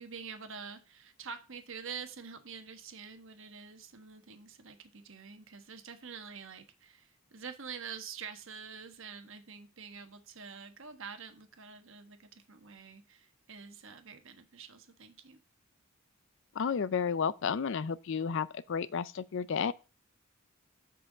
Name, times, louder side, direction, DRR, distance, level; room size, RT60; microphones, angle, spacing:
voice 1, 0.0-15.4, right 6 dB, 65° right, 1.2 m, -46 dB
voice 2, 16.6-19.7, left 6 dB, 60° left, 0.4 m, -32 dB
7.5 x 5.6 x 3.8 m
head